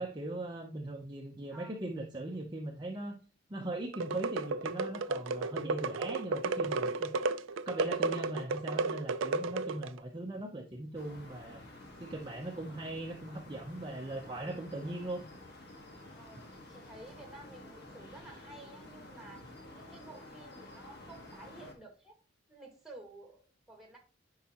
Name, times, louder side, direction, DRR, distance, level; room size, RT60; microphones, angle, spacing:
voice 1, 0.0-3.2 3.5-7.1 7.7-11.6 12.0-15.2, right 2 dB, 20° right, 1 dB, 0.7 m, -39 dB
sound 1, 3.9-10.0, right 3 dB, 75° right, 0.4 m, -33 dB
sound 2, 10.9-21.7, left 1 dB, 55° left, 1.6 m, -51 dB
voice 2, 16.1-19.4 19.7-22.2 22.5-24.0, right 2 dB, ahead, 2 dB, 1.8 m, -53 dB
10.0 x 4.7 x 2.9 m, 0.37 s
head